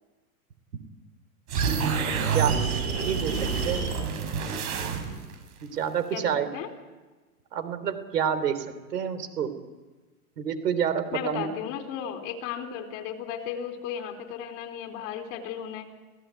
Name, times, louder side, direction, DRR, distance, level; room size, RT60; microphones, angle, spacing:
sound 1, 1.5-5.3, right 6 dB, 65° right, 6.6 m, -27 dB
sound 2, 1.6-3.5, right 1 dB, 20° right, 6.2 m, -43 dB
voice 1, 2.3-2.6 3.1-3.4 3.6-3.9 5.6-6.5 7.5-8.7 8.9-9.5 10.4-11.5, right 8 dB, 85° right, 11 dB, 3.6 m, -28 dB
voice 2, 6.1-6.7 11.1-15.9, left 8 dB, 55° left, 6 dB, 4.1 m, -35 dB
30.0 x 16.5 x 9.4 m, 1.3 s
hypercardioid pair, 125°, 46 cm